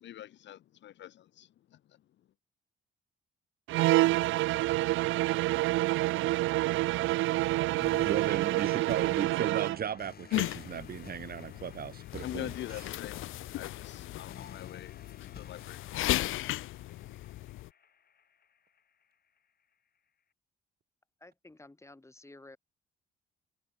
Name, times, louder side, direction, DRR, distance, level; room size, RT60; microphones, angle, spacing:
voice 1, 0.0-2.0 12.2-16.3, left 12 dB, 65° left, 0.8 m, -45 dB
sound 1, 3.7-9.8, right 18 dB, 85° right, 0.5 m, -27 dB
sound 2, 7.8-18.8, left 7 dB, 50° left, 7.8 m, -52 dB
voice 2, 8.0-12.5, right 8 dB, 50° right, 1.0 m, -36 dB
sound 3, 10.3-17.7, left 16 dB, 90° left, 1.3 m, -36 dB
voice 3, 21.2-22.6, left 2 dB, 15° left, 5.1 m, -53 dB
cardioid pair, 90°, 20 cm